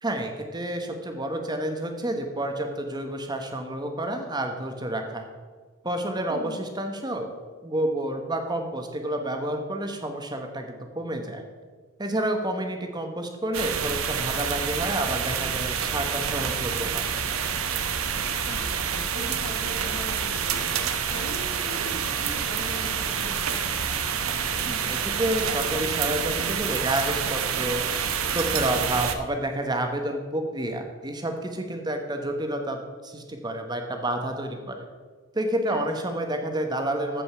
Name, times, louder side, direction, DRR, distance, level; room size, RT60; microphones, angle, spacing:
voice 1, 0.0-5.3 5.8-7.3 7.6-11.4 12.0-17.1 24.6-27.9 28.3-34.9 35.3-37.2, right 1 dB, 20° right, 4 dB, 1.1 m, -29 dB
sound 1, 13.5-29.1, right 7 dB, 70° right, 0.9 m, -28 dB
voice 2, 18.5-20.7 21.1-23.9 35.7-35.8, left 1 dB, 80° left, -3 dB, 1.6 m, -40 dB
14.5 x 5.3 x 5.7 m, 1.5 s
head